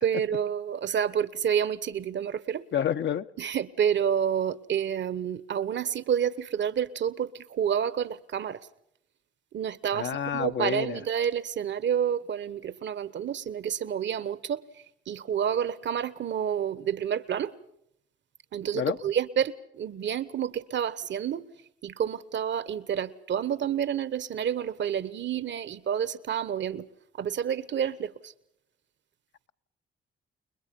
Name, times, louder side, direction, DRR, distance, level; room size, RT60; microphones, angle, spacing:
voice 1, 0.0-2.6 3.4-8.7 9.5-14.6 15.1-17.5 18.5-21.5 21.8-26.9 27.2-28.3, right 8 dB, 60° right, 1.3 m, -29 dB
voice 2, 2.7-3.2 9.9-11.0 18.7-19.0, left 9 dB, 60° left, 1.0 m, -28 dB
30.0 x 21.5 x 5.4 m
supercardioid pair, 60°, 21 cm